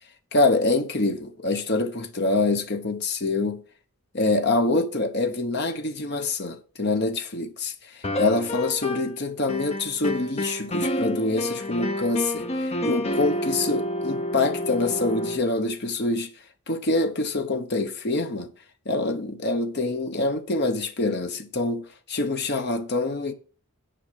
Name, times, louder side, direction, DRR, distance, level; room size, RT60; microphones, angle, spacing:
voice 1, 0.3-3.6 4.1-16.3 16.7-18.5 18.9-23.3, left 2 dB, 50° left, 1.1 m, -25 dB
sound 1, 8.0-9.2 9.5-15.4, left 1 dB, 30° left, 0.7 m, -29 dB
10.0 x 5.2 x 6.7 m
head